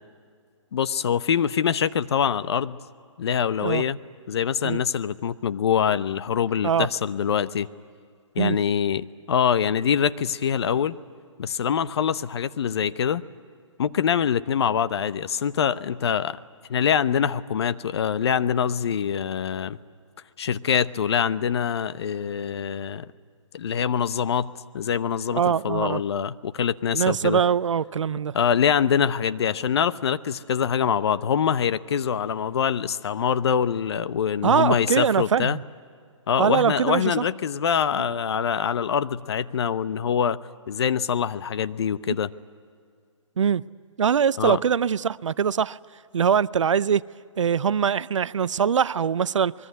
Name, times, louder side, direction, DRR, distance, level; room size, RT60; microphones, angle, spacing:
voice 1, 0.7-2.8 3.2-4.0 4.3-7.7 8.3-10.9 11.4-13.2 13.8-16.4 16.7-19.8 20.4-23.1 23.5-27.4 28.3-35.6 36.3-40.4 40.7-42.3 44.4-44.6, left 8 dB, 50° left, 14 dB, 0.9 m, -24 dB
voice 2, 25.3-26.0 26.9-28.3 34.4-35.6 36.4-37.2 43.4-43.6 44.0-45.8 46.1-47.0 47.4-49.5, right 7 dB, 65° right, 19 dB, 0.6 m, -22 dB
25.0 x 22.0 x 9.5 m, 2.1 s
figure-of-eight pair, 140°, 17 cm